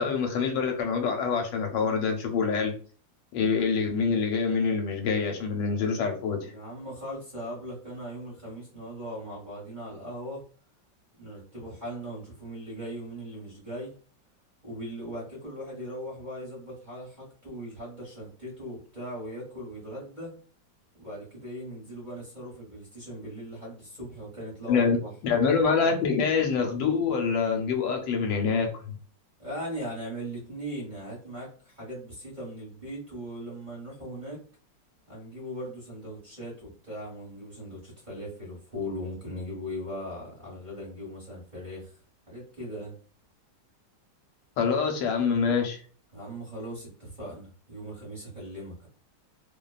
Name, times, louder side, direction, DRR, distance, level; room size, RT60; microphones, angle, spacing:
voice 1, 0.0-2.7 3.3-6.5 24.7-25.0 25.2-28.9 44.6-45.8, left 5 dB, 85° left, 3 dB, 1.3 m, -25 dB
voice 2, 6.1-10.4 11.2-13.9 14.6-20.3 21.0-25.1 29.4-34.4 35.1-41.9 42.3-42.9 46.1-48.9, equal, 30° right, -5 dB, 1.0 m, -39 dB
2.8 x 2.2 x 2.3 m, 0.42 s
omnidirectional pair, 2.0 m